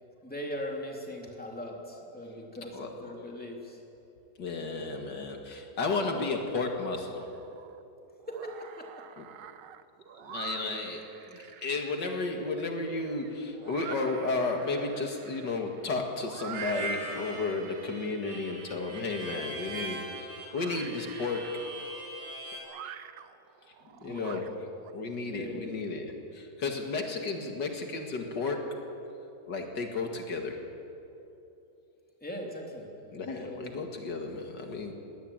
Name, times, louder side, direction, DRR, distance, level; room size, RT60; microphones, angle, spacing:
voice 1, 0.2-3.8 8.3-8.9 11.3-11.4 24.0-24.4 25.3-25.7 32.2-33.9, equal, 5° left, -1 dB, 3.2 m, -40 dB
voice 2, 4.4-7.3 9.2-9.3 10.2-21.7 23.8-24.5 24.9-28.9 29.5-30.6 33.1-34.9, left 3 dB, 80° left, 3 dB, 2.6 m, -33 dB
sound 1, 7.2-7.8 8.2-24.9, right 9 dB, 90° right, 1.5 m, -47 dB
Harmonica, 16.5-22.6, right 2 dB, 65° right, 5.2 m, -40 dB
21.0 x 19.0 x 9.0 m, 2.8 s
omnidirectional pair, 1.9 m